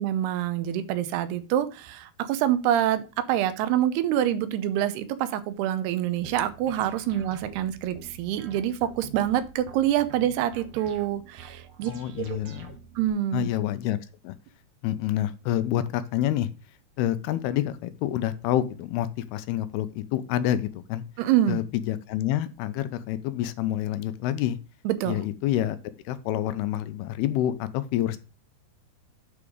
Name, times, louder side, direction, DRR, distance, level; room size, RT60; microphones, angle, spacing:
voice 1, 0.0-12.4 13.0-13.5 21.2-21.6 24.9-25.2, right 11 dB, 85° right, 12 dB, 2.8 m, -26 dB
sound 1, 6.2-13.1, right 7 dB, 70° right, 1.6 m, -46 dB
voice 2, 11.9-12.8 13.3-14.0 14.2-14.4 14.8-16.5 17.0-21.0 21.5-24.6 25.1-25.8 26.1-28.2, left 12 dB, 85° left, 13 dB, 2.6 m, -28 dB
8.7 x 4.8 x 5.0 m, 0.32 s
omnidirectional pair, 4.6 m